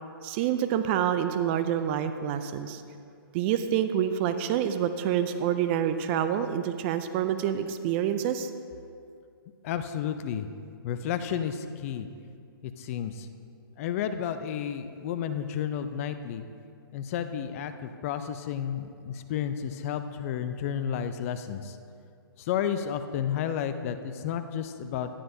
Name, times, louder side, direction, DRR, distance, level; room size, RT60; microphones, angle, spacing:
voice 1, 0.2-2.8 3.3-8.5, right 9 dB, 30° right, 10 dB, 0.4 m, -27 dB
voice 2, 9.6-10.5 10.8-12.1 12.6-13.3 13.8-16.4 16.9-21.8 22.4-25.1, left 9 dB, 35° left, 9 dB, 0.5 m, -32 dB
11.5 x 10.0 x 2.7 m, 2.3 s
hypercardioid pair, 130°, 13 cm